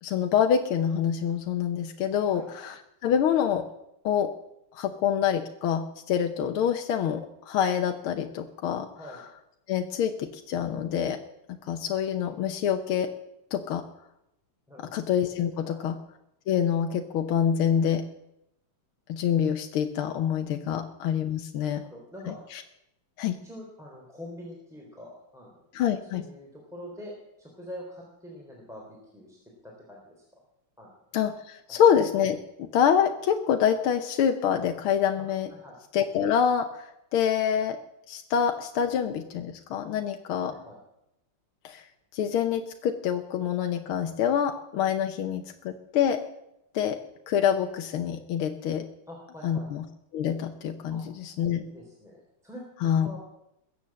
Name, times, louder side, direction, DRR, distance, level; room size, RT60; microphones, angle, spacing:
voice 1, 0.0-2.7 3.0-3.6 4.0-4.3 4.7-8.9 9.7-11.2 11.7-13.1 13.5-13.8 14.8-16.0 16.5-18.0 19.1-21.8 22.5-22.6 23.2-23.4 25.7-26.3 31.1-35.5 35.9-37.8 38.1-40.5 41.6-41.8 42.1-46.2 46.7-47.0 47.3-48.8 49.4-49.8 50.1-51.6 52.8-53.1, left 8 dB, 75° left, 5 dB, 1.7 m, -26 dB
voice 2, 21.6-22.3 23.4-25.5 26.1-30.2 30.8-30.9 35.5-35.8 40.4-40.8 49.1-49.7 50.9-51.0 51.6-52.6 53.0-53.2, left 1 dB, ahead, -2 dB, 3.5 m, -44 dB
21.5 x 8.4 x 7.5 m, 0.83 s
omnidirectional pair, 2.4 m